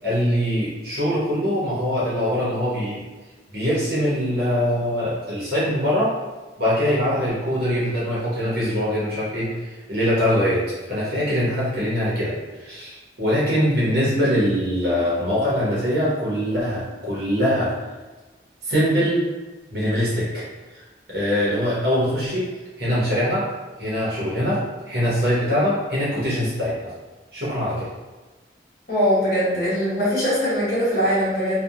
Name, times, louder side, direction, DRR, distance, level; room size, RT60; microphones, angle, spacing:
voice 1, 0.0-3.0 3.5-6.1 6.6-10.6 10.9-17.7 18.6-19.3 19.7-20.4 20.7-20.8 21.1-22.5 22.8-23.4 23.8-26.9 27.3-27.9, equal, 55° right, -8 dB, 0.9 m, -23 dB
voice 2, 28.9-31.6, equal, 55° left, -8 dB, 1.1 m, -21 dB
2.7 x 2.3 x 2.4 m, 1.2 s
head